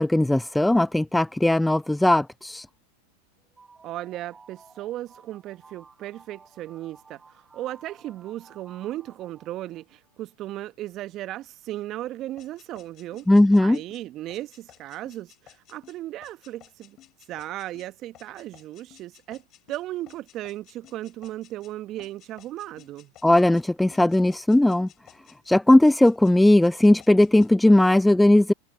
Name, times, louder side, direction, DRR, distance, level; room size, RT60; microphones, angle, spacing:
voice 1, 0.0-2.7 13.3-13.8 23.2-24.9 25.5-28.5, left 1 dB, 5° left, 0.4 m, -18 dB
sound 1, 3.4-10.2, right 4 dB, 15° right, 5.6 m, -54 dB
voice 2, 3.8-13.3 13.6-17.0 17.3-19.4 19.7-23.1, right 14 dB, 40° right, 1.0 m, -36 dB
sound 2, 12.4-21.7 22.0-23.6 23.9-25.6 25.8-27.5, left 13 dB, 40° left, 6.9 m, -54 dB
figure-of-eight pair, 90°, 0 cm